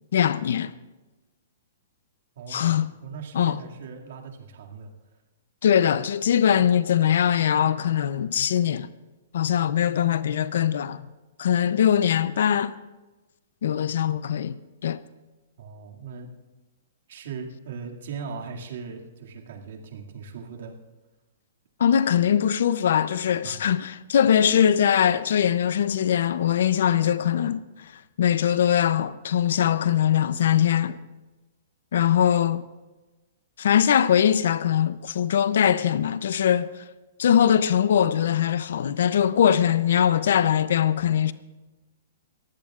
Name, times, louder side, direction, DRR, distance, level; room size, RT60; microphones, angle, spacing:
voice 1, 0.1-0.7 2.5-2.9 3.3-3.6 5.6-8.9 9.3-11.1 11.4-12.7 13.6-15.0 21.8-27.9 28.2-31.0 31.9-32.6 33.6-36.7 37.2-41.3, left 9 dB, 70° left, 0.5 m, -21 dB
voice 2, 2.4-4.9 15.6-16.3 17.1-20.8 23.4-23.6, right 5 dB, 65° right, 2.2 m, -39 dB
22.5 x 15.5 x 2.4 m
hypercardioid pair, 155°, 0 cm